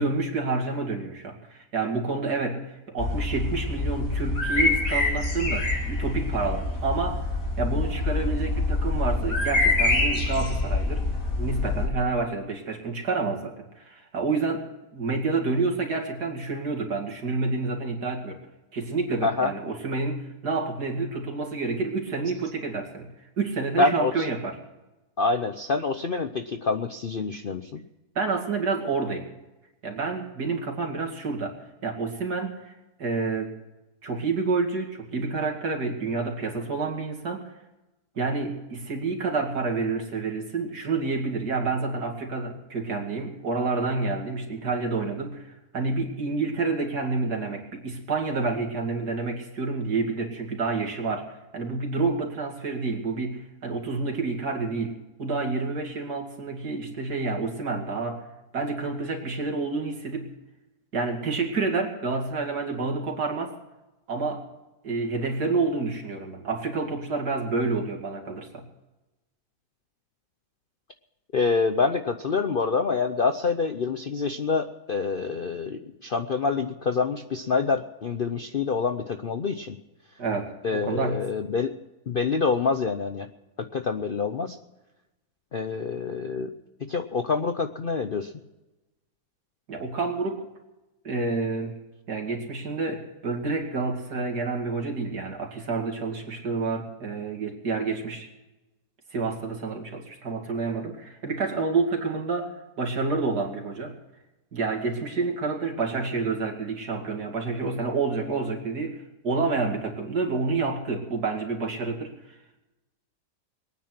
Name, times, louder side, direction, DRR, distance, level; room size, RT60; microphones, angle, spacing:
voice 1, 0.0-7.2 7.6-11.1 11.3-14.7 14.9-18.4 18.7-23.1 23.4-24.6 28.1-29.3 29.8-31.5 31.8-32.7 33.0-33.5 34.0-37.5 38.1-58.2 58.5-60.3 60.9-63.5 64.1-64.4 64.8-68.7 80.2-81.3 89.7-90.4 91.0-91.8 92.1-98.3 99.1-104.0 104.5-112.1, right 3 dB, 70° right, 2 dB, 3.0 m, -29 dB
sound 1, 3.0-11.9, left 2 dB, 75° left, 3.4 m, -26 dB
voice 2, 19.2-19.5 23.8-24.3 25.2-27.8 71.3-79.8 80.6-81.7 82.1-83.3 83.6-84.6 85.5-86.5 86.8-88.3, left 4 dB, 50° left, 7 dB, 0.6 m, -26 dB
22.5 x 9.5 x 6.0 m, 1.0 s
omnidirectional pair, 1.8 m